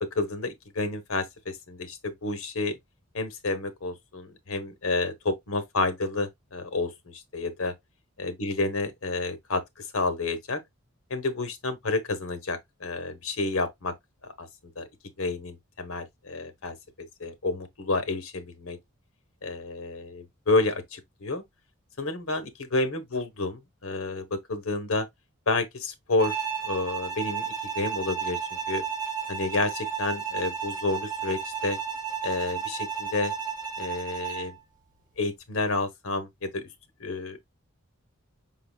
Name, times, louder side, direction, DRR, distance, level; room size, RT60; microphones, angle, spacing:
voice 1, 0.0-2.8 3.1-7.7 8.2-10.6 11.1-13.9 14.2-14.5 14.8-14.9 15.2-18.8 19.4-21.4 22.0-25.1 25.5-28.4 28.7-28.8 29.3-31.8 32.2-33.3 33.8-34.5 35.2-36.7 37.0-37.4, left 3 dB, 70° left, 1.0 m, -30 dB
Bowed string instrument, 26.2-34.6, right 7 dB, 20° right, 1.5 m, -33 dB
5.4 x 3.8 x 2.3 m
head